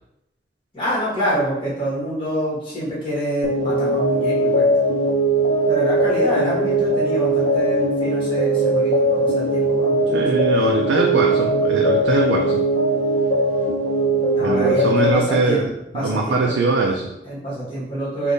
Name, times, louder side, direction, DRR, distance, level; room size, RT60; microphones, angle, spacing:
voice 1, 0.7-4.7 5.7-10.2 14.3-15.7 15.9-16.5 17.2-18.3, right 1 dB, 30° left, -8 dB, 1.4 m, -26 dB
sound 1, 3.4-15.1, right 1 dB, 80° left, 0.8 m, -20 dB
voice 2, 10.1-12.6 14.4-15.7 16.0-17.1, right 3 dB, 80° right, 1 dB, 0.3 m, -21 dB
3.4 x 2.5 x 2.6 m, 0.85 s
head